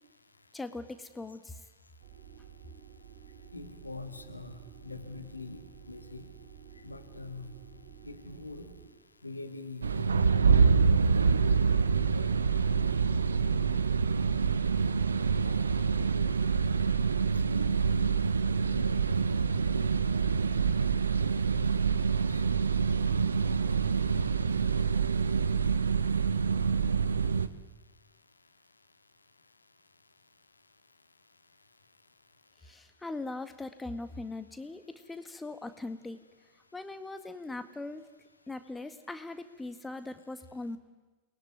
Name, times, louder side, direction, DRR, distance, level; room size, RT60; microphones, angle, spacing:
voice 1, 0.5-1.6 32.6-36.2 36.7-38.1 38.5-40.8, left 2 dB, 10° left, 9 dB, 1.9 m, -40 dB
sound 1, 2.0-8.9, right 8 dB, 50° right, 4.7 m, -52 dB
voice 2, 3.5-4.6 4.8-6.3 6.8-7.5 8.0-8.7 9.2-10.8 11.6-13.2 14.1-14.2 14.7-15.1 15.4-16.4 17.5-18.2 18.5-20.2 21.3-22.4 23.0-23.6 24.1-24.5 24.7-24.9, left 3 dB, 80° left, 6 dB, 2.5 m, -45 dB
sound 2, 9.8-27.5, right 5 dB, 75° right, 1.1 m, -26 dB
29.0 x 21.5 x 9.5 m, 1.2 s
figure-of-eight pair, 90°, 0 cm